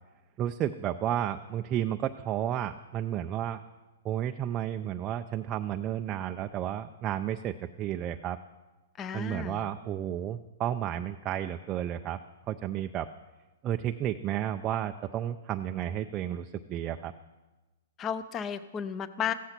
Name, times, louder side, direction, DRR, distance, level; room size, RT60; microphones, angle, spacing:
voice 1, 0.4-3.6 4.0-8.4 9.1-12.2 12.5-13.1 13.6-17.1, right 11 dB, 20° right, 6 dB, 0.5 m, -32 dB
voice 2, 9.0-9.7 18.0-19.3, left 8 dB, 20° left, 14 dB, 0.7 m, -33 dB
15.5 x 14.5 x 6.0 m, 1.1 s
hypercardioid pair, 165°, 0 cm